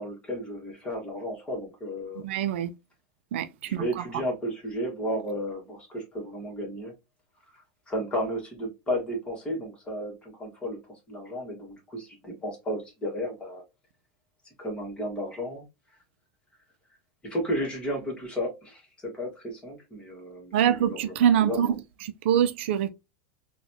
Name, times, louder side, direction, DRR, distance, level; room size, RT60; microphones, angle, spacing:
voice 1, 0.0-2.2 3.6-6.9 7.5-10.8 11.1-13.6 14.6-15.6 17.2-21.7, equal, 15° left, 1.5 m, -33 dB
voice 2, 2.2-2.7 3.3-4.0 20.5-21.7 22.0-22.9, right 9 dB, 75° right, 0.4 m, -24 dB
3.9 x 2.3 x 2.7 m
supercardioid pair, 130°, 6 cm